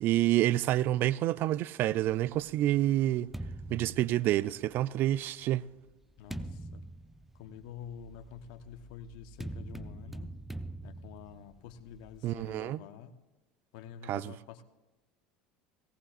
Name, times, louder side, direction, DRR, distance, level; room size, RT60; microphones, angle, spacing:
voice 1, 0.0-3.3 3.7-5.6 12.2-12.8 14.1-14.3, right 14 dB, 50° right, 0.4 m, -28 dB
sound 1, 2.5-4.8 5.5-12.6, right 1 dB, 5° right, 0.7 m, -44 dB
voice 2, 6.2-6.9 7.3-10.3 10.8-13.1 13.7-14.6, left 8 dB, 70° left, 1.0 m, -48 dB
18.0 x 17.5 x 2.5 m
hypercardioid pair, 90°, 4 cm